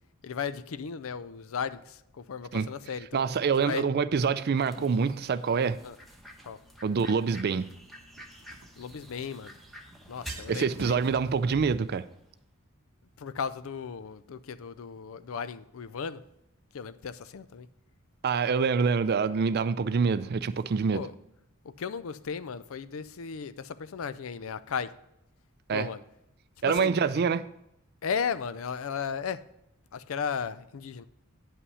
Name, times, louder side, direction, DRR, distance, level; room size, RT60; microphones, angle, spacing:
voice 1, 0.2-3.2 3.6-3.9 4.8-5.0 5.8-6.0 6.5-6.6 8.8-9.5 10.1-11.0 13.2-16.2 16.7-17.7 20.9-21.1 21.6-24.9 25.7-26.0 26.6-27.0 28.0-29.4 29.9-31.0, left 6 dB, 70° left, 0.4 m, -35 dB
voice 2, 3.1-5.8 6.8-7.7 10.5-12.0 18.2-21.0 25.7-25.9 26.6-27.4, right 5 dB, 50° right, 0.4 m, -26 dB
sound 1, 4.6-12.3, right 1 dB, ahead, 1.0 m, -49 dB
sound 2, 5.7-5.8 8.2-9.5 9.8-9.9 10.1-11.1, right 2 dB, 80° right, 0.9 m, -45 dB
9.8 x 5.7 x 5.5 m
head